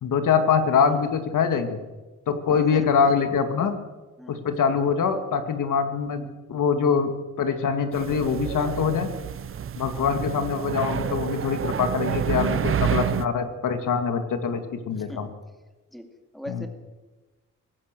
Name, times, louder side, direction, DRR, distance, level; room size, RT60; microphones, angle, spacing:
voice 1, 0.0-1.8 2.3-3.8 4.3-7.1 7.4-9.1 9.8-15.3 16.5-16.6, left 6 dB, 75° left, 8 dB, 2.2 m, -24 dB
voice 2, 2.5-3.1 4.2-4.4 9.9-10.3 15.0-15.3 15.9-16.7, equal, ahead, 5 dB, 2.4 m, -40 dB
sound 1, 7.9-13.3, right 9 dB, 40° right, 0.7 m, -28 dB
24.5 x 18.5 x 6.8 m, 1.2 s
wide cardioid pair, 135°, 32 cm